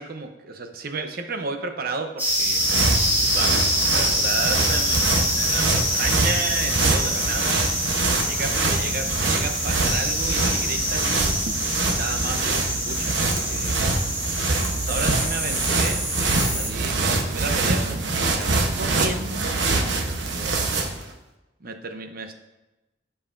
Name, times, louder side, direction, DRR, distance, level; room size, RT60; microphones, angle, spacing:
voice 1, 0.0-2.6 3.2-7.7 8.2-11.4 11.9-13.8 14.8-20.6 21.6-22.3, right 4 dB, 55° right, 6 dB, 0.8 m, -33 dB
sound 1, 2.2-16.7, equal, 10° right, 2.8 m, -25 dB
sound 2, 2.3-21.1, right 3 dB, 75° right, 1.0 m, -25 dB
14.0 x 5.6 x 2.6 m, 1.0 s
head